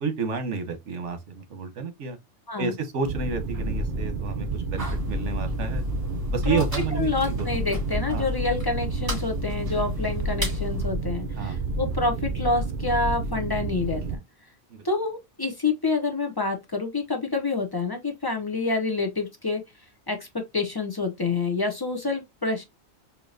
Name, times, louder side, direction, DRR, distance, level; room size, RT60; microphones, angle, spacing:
voice 1, 0.0-2.2 2.6-5.8 6.3-7.5 8.1-8.4 11.4-11.7 14.7-14.8, right 4 dB, 80° right, 1.2 m, -31 dB
sound 1, 3.0-14.2, right 3 dB, 65° right, 0.9 m, -30 dB
sound 2, 4.8-10.9, left 4 dB, 20° right, 2.6 m, -33 dB
voice 2, 6.9-14.2 14.8-19.6 20.1-20.3 20.5-22.6, left 3 dB, 30° left, 0.4 m, -27 dB
4.3 x 2.8 x 2.5 m
omnidirectional pair, 1.2 m